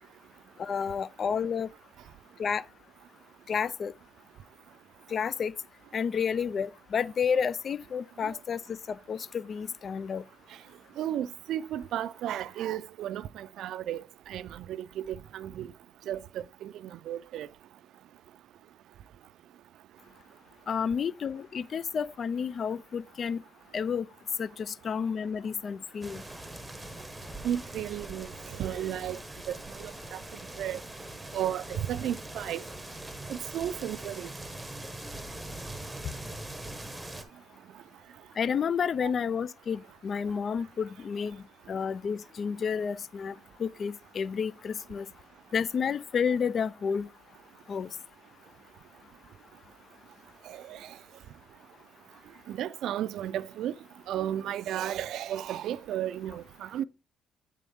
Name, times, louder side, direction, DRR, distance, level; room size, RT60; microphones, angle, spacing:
voice 1, 0.6-1.7 2.4-2.6 3.5-3.9 5.1-5.5 5.9-10.2 20.7-23.4 23.7-24.1 24.4-26.2 38.4-43.3 43.6-45.1 45.5-47.1 47.7-47.9, left 6 dB, 50° left, 0.3 m, -30 dB
voice 2, 11.0-15.7 16.1-17.5 27.4-29.2 29.5-30.2 30.6-30.8 31.3-32.6 33.3-34.3 39.0-39.1 50.5-51.0 52.5-53.7 54.1-56.8, right 11 dB, 80° right, 0.4 m, -34 dB
sound 1, 26.0-37.2, right 1 dB, 10° right, 0.9 m, -42 dB
8.4 x 3.6 x 3.5 m
cardioid pair, 90°, 0 cm